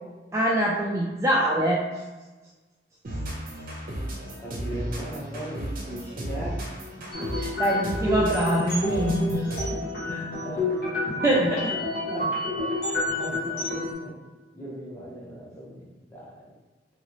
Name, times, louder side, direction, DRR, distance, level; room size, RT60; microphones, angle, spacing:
voice 1, 0.3-1.8 7.2-9.6 11.2-11.7, right 1 dB, 15° right, -5 dB, 0.4 m, -24 dB
sound 1, 3.0-9.9, right 1 dB, 50° right, 0.7 m, -34 dB
voice 2, 4.4-6.6 9.2-9.3 10.0-11.0 12.1-14.2 14.5-16.4, right 1 dB, 10° left, -6 dB, 0.9 m, -38 dB
sound 2, 7.1-13.9, left 2 dB, 55° left, 1.2 m, -29 dB
2.9 x 2.8 x 3.0 m, 1.2 s
head